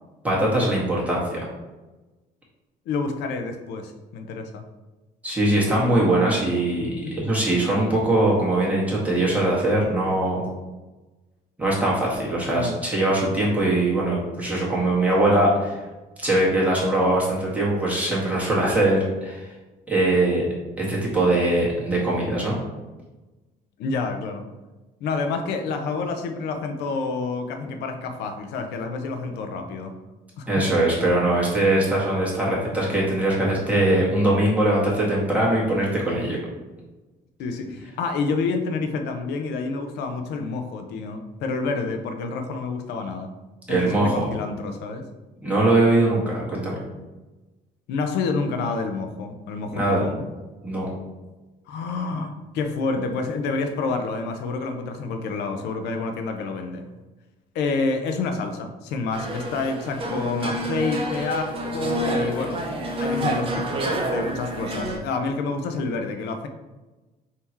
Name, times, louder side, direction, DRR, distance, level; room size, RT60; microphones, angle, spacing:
voice 1, 0.2-1.4 5.2-10.4 11.6-15.7 16.2-19.4 19.9-20.5 20.8-22.5 30.5-36.4 43.7-44.3 45.4-46.8 49.7-50.1 50.6-50.9, right 1 dB, 10° right, -5 dB, 1.5 m, -21 dB
voice 2, 2.9-4.6 7.0-7.3 12.5-12.8 23.8-24.5 25.0-29.9 30.4-30.6 37.4-43.3 43.7-45.1 47.9-50.3 51.7-56.9 57.5-62.6 63.0-66.5, left 4 dB, 80° left, 6 dB, 0.6 m, -28 dB
sound 1, 59.1-65.0, right 1 dB, 30° right, 0.8 m, -28 dB
3.6 x 2.8 x 4.4 m, 1.2 s
cardioid pair, 110°, 17 cm